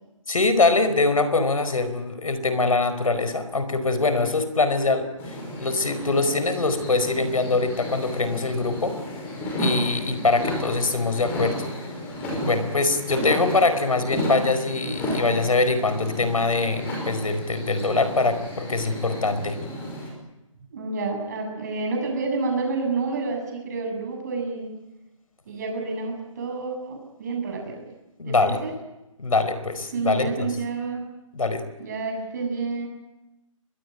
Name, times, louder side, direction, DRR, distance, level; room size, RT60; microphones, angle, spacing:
voice 1, 0.3-9.0 9.6-11.7 12.4-19.6 28.2-28.6 29.2-30.5 31.3-31.6, left 3 dB, 85° left, 11 dB, 4.9 m, -23 dB
sound 1, 5.2-20.1, equal, 10° left, 5.4 m, -32 dB
voice 2, 10.1-10.5 20.7-24.7 25.5-27.8 28.2-28.7 29.9-31.1 31.8-32.9, right 3 dB, 30° right, 3 dB, 7.6 m, -29 dB
25.5 x 21.5 x 9.4 m, 0.97 s
hypercardioid pair, 165°, 17 cm